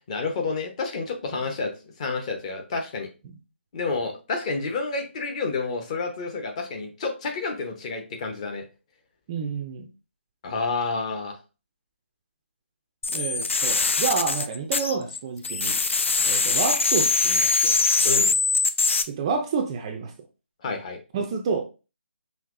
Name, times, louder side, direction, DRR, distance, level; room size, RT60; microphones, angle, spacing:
voice 1, 0.0-1.7 2.0-3.1 3.7-8.6 10.4-11.3 18.0-18.4 20.6-21.0, left 4 dB, 30° left, 1.0 m, -29 dB
voice 2, 9.3-9.9 13.1-15.8 16.3-17.7 19.1-20.1 21.1-21.6, right 5 dB, 25° right, 0.4 m, -29 dB
sound 1, 13.0-15.2 15.4-19.0, left 4 dB, 75° left, 0.5 m, -22 dB
5.6 x 2.9 x 2.5 m
figure-of-eight pair, 160°, 7 cm